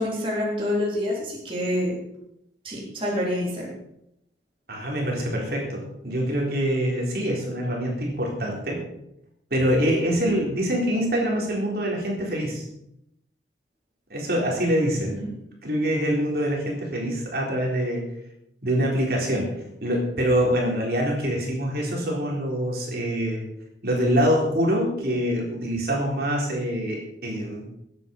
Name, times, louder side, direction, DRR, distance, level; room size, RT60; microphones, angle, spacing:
voice 1, 0.0-2.0 2.6-3.7 15.1-15.3, left 1 dB, 30° right, -4 dB, 3.9 m, -27 dB
voice 2, 4.7-8.8 9.5-12.7 14.1-15.2 15.6-18.0 18.6-19.5 19.8-23.5 23.8-27.6, equal, 55° right, -2 dB, 4.0 m, -25 dB
20.5 x 8.4 x 5.4 m, 0.80 s
head